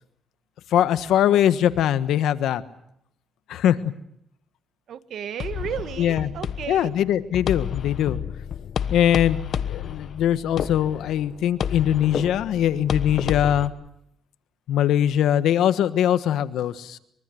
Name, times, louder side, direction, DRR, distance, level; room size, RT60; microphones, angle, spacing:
voice 1, 0.7-2.6 3.5-3.8 6.0-6.3 6.7-8.2 8.9-13.7 14.7-17.0, left 10 dB, 80° left, 12 dB, 1.3 m, -21 dB
voice 2, 4.9-6.9, right 9 dB, 65° right, 12 dB, 1.6 m, -33 dB
sound 1, 5.4-13.7, left 8 dB, 60° left, 1.2 m, -30 dB
24.5 x 23.5 x 7.8 m, 0.77 s
cardioid pair, 90°, 0 cm